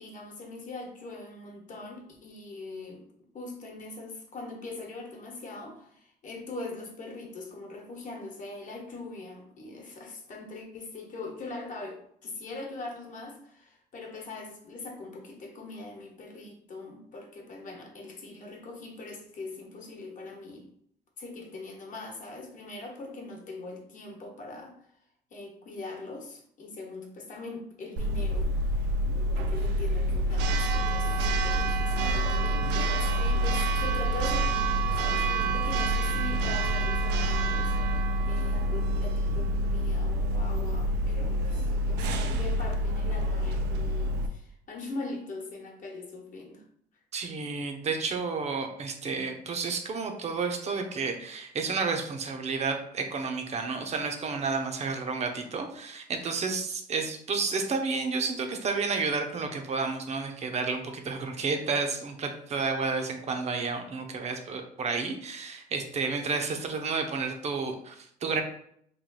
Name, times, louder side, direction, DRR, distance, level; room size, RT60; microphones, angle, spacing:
voice 1, 0.0-3.0 3.3-20.7 21.2-24.9 25.3-28.9 29.4-46.6, left 2 dB, 50° left, 1 dB, 1.1 m, -42 dB
Church bell, 28.0-44.3, right 1 dB, 80° right, 0.4 m, -27 dB
voice 2, 47.1-68.4, right 4 dB, 40° right, 5 dB, 0.6 m, -31 dB
3.2 x 2.5 x 3.9 m, 0.67 s
cardioid pair, 110°, 17 cm